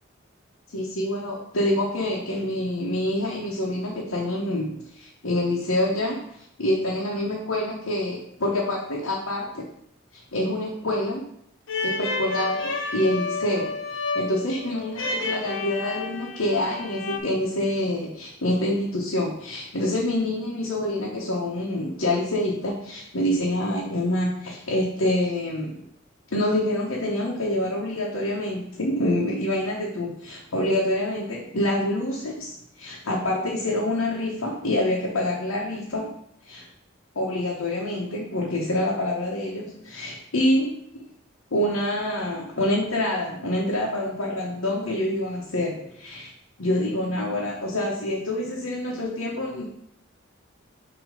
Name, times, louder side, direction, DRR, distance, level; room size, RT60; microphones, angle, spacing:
voice 1, 0.7-9.7 10.1-11.2 11.8-12.6 12.9-25.9 26.3-36.1 36.4-36.7 37.1-41.1 41.5-46.3 46.6-49.6, left 1 dB, 90° left, -4 dB, 1.1 m, -26 dB
sound 1, 11.7-17.2, left 3 dB, 65° left, 0.8 m, -30 dB
6.3 x 3.0 x 5.1 m, 0.71 s
head